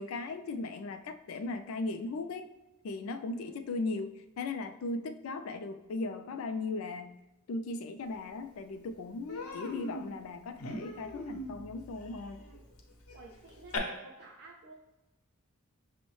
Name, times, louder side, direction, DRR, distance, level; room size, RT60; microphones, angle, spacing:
voice 1, 0.0-2.4 2.8-4.1 4.4-7.1 7.5-12.4, left 3 dB, 70° left, 9 dB, 0.3 m, -37 dB
Human voice, 8.3-8.4 8.7-8.9 9.3-13.8, left 2 dB, 90° left, 0.7 m, -42 dB
voice 2, 9.4-9.7 12.4-12.6 13.1-14.7, right 2 dB, 50° right, -3 dB, 0.5 m, -53 dB
6.1 x 2.0 x 3.0 m, 1.0 s
head